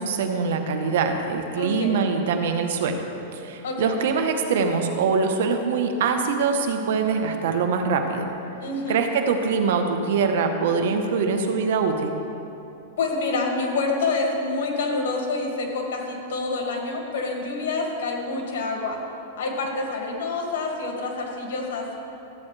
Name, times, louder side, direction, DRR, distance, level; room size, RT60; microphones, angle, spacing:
voice 1, 0.0-3.1 3.3-8.3 8.9-12.2, right 5 dB, 70° right, 5 dB, 1.0 m, -23 dB
voice 2, 1.6-2.0 3.6-4.0 8.6-9.0 13.0-19.0 19.4-21.9, left 3 dB, 70° left, 0 dB, 2.1 m, -27 dB
13.5 x 8.4 x 3.3 m, 2.8 s
supercardioid pair, 145°, 0 cm